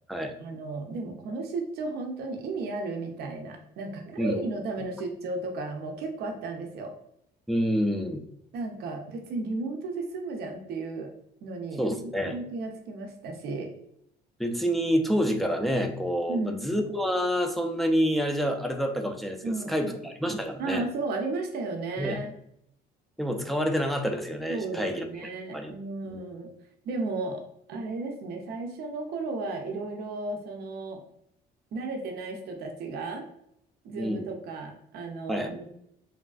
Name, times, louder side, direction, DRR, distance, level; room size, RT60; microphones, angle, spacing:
voice 1, 0.4-6.9 8.5-11.1 11.4-13.7 16.3-16.7 19.4-20.1 20.6-22.3 24.5-26.5 26.8-27.4 27.7-31.0 31.7-33.3 33.8-35.6, right 3 dB, 70° right, 2 dB, 0.5 m, -34 dB
voice 2, 7.5-8.2 11.8-12.4 14.4-20.8 22.0-22.2 23.2-25.0 25.5-25.7 26.0-26.2 34.0-34.3 35.3-35.5, equal, ahead, 3 dB, 0.3 m, -28 dB
3.3 x 2.3 x 2.3 m, 0.77 s
cardioid pair, 110°, 17 cm